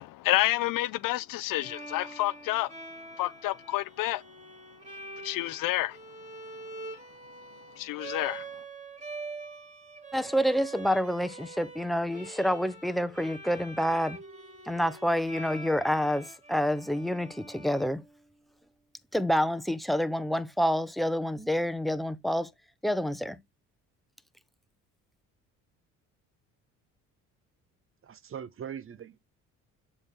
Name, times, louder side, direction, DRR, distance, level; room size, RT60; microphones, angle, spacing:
voice 1, 0.0-2.7 3.2-4.2 5.2-6.0 7.8-8.5, left 17 dB, 60° left, 0.6 m, -29 dB
Bowed string instrument, 1.6-18.5, right 3 dB, 20° right, 2.3 m, -45 dB
voice 2, 10.1-14.2 14.7-18.0 19.1-22.5 22.8-23.4, equal, ahead, 0.8 m, -28 dB
voice 3, 28.0-29.2, right 8 dB, 35° right, 0.6 m, -41 dB
7.3 x 4.3 x 3.4 m
hypercardioid pair, 65°, 37 cm